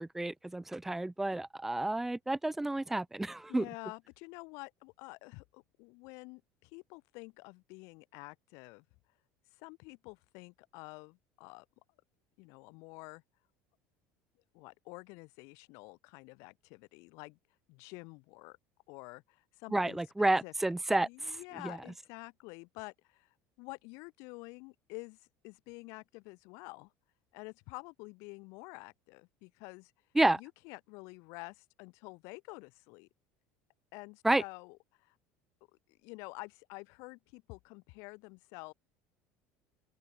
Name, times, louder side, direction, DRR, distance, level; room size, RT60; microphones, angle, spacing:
voice 1, 0.0-3.6 19.7-21.1 30.1-30.4 34.2-34.4, right 2 dB, 5° right, 1.3 m, -30 dB
voice 2, 3.5-8.8 9.5-11.7 12.4-13.2 14.5-17.4 17.7-18.6 18.9-20.5 21.0-26.9 27.3-29.9 30.3-33.1 33.9-35.2 35.9-38.7, left 29 dB, 65° left, 3.4 m, -49 dB
open air
cardioid pair, 160°, 5 cm